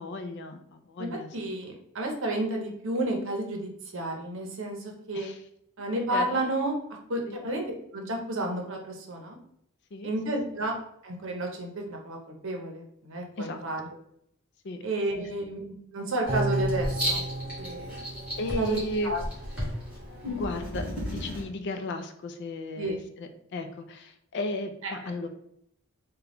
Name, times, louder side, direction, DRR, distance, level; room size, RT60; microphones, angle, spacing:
voice 1, 0.0-1.6 5.1-5.4 6.1-6.4 7.3-7.4 9.9-10.1 13.4-13.9 14.6-14.8 15.2-15.3 18.4-19.2 20.3-25.3, left 2 dB, 50° left, 7 dB, 0.4 m, -35 dB
voice 2, 1.3-5.3 5.8-6.8 7.1-7.6 7.9-9.4 10.0-10.8 11.0-12.2 12.4-13.8 14.8-15.6 15.9-17.3 17.6-17.9 18.6-18.8 19.0-19.2 22.8-23.0 24.8-25.0, right 1 dB, 60° right, 2 dB, 0.7 m, -31 dB
Writing, 16.2-21.4, equal, 5° right, 1.4 m, -34 dB
sound 1, 16.3-19.6 20.0-20.1, right 2 dB, 25° right, 0.5 m, -33 dB
3.7 x 2.2 x 3.3 m, 0.71 s
head